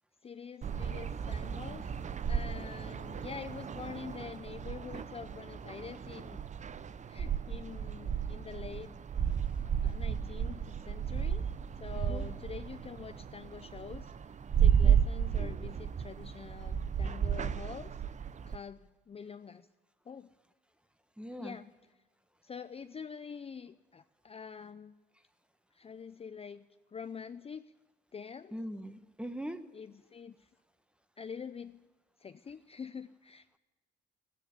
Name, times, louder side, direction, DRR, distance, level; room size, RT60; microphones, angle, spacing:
voice 1, 0.2-2.0 2.3-6.4 7.1-9.0 9.8-11.5 11.8-14.1 14.6-18.0 18.5-18.8 19.1-19.7 20.1-20.3 21.4-21.7 22.4-24.9 25.7-26.6 26.9-27.7 28.1-28.6 29.7-30.5 31.2-31.9 32.2-33.6, left 6 dB, 30° left, 11 dB, 0.5 m, -45 dB
sound 1, 0.6-18.6, right 8 dB, 35° right, 0.6 m, -33 dB
voice 2, 21.2-21.6 28.5-29.6, equal, 5° right, 10 dB, 1.2 m, -41 dB
13.0 x 9.9 x 9.8 m, 1.2 s
cardioid pair, 90°, 20 cm